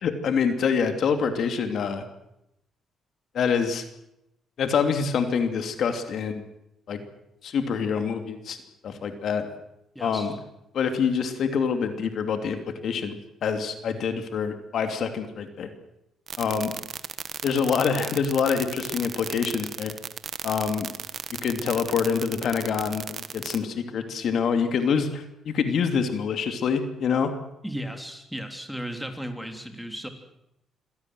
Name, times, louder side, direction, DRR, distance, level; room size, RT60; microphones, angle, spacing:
voice 1, 0.0-2.0 3.3-3.8 4.6-6.4 6.9-7.0 7.4-8.6 8.8-9.5 10.0-10.3 10.7-15.7 16.4-16.7 17.4-20.0 20.4-20.9 21.3-27.3, left 6 dB, 65° left, 7 dB, 2.8 m, -26 dB
voice 2, 10.0-10.4 27.6-30.1, equal, ahead, 5 dB, 3.5 m, -35 dB
sound 1, 16.3-23.6, right 7 dB, 50° right, 1.4 m, -35 dB
26.5 x 17.5 x 7.9 m, 0.84 s
cardioid pair, 90°, 0 cm